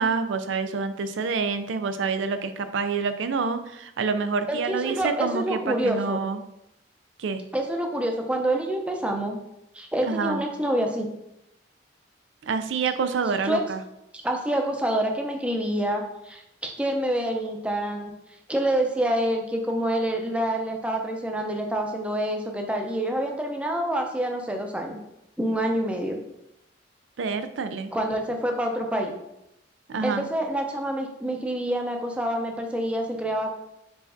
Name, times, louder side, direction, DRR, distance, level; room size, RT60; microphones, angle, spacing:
voice 1, 0.0-6.4 7.2-7.4 10.0-10.4 12.4-13.8 27.2-27.9 29.9-30.3, right 5 dB, 85° right, 10 dB, 0.4 m, -27 dB
voice 2, 4.5-6.2 7.5-9.4 9.7-11.1 13.4-13.6 14.2-18.1 18.5-25.0 25.4-26.2 27.9-29.2 30.0-33.5, right 1 dB, 5° right, 2 dB, 0.5 m, -27 dB
4.7 x 4.4 x 2.6 m, 0.85 s
head